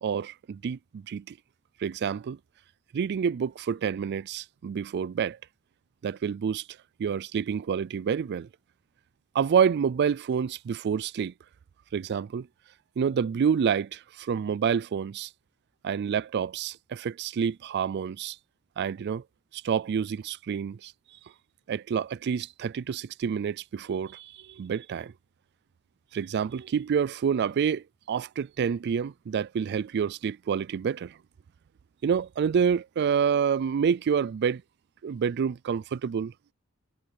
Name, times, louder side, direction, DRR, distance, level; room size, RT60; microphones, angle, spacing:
voice 1, 0.0-1.4 1.8-2.4 2.9-5.4 6.0-6.6 7.0-8.5 9.3-11.3 11.9-12.5 13.0-15.3 15.8-18.4 18.8-19.2 19.5-20.9 21.7-25.1 26.1-31.2 32.0-34.6 35.0-36.3, right 7 dB, 50° right, 0.3 m, -28 dB
head